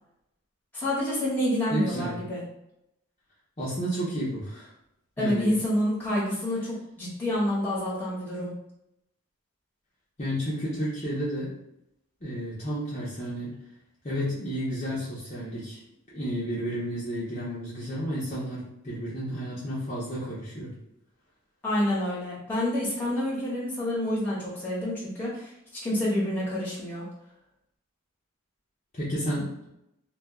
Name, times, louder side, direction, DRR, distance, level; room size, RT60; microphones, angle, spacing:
voice 1, 0.7-2.4 5.2-8.5 21.6-27.1, left 1 dB, 10° left, -8 dB, 1.0 m, -28 dB
voice 2, 1.7-2.2 3.6-4.7 5.2-5.5 10.2-11.5 12.2-13.5 14.0-15.8 16.1-20.7 28.9-29.7, equal, 35° left, -9 dB, 0.7 m, -31 dB
2.4 x 2.2 x 3.6 m, 0.83 s
head